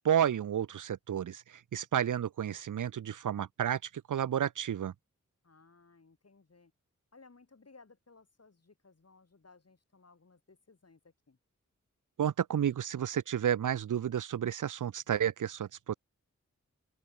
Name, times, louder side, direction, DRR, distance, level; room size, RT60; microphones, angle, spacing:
voice 1, 0.0-4.9 12.2-15.9, right 9 dB, 80° right, 0.6 m, -31 dB
voice 2, 5.4-6.7 7.1-11.4, left 4 dB, 55° left, 5.7 m, -60 dB
open air
cardioid pair, 55°, 31 cm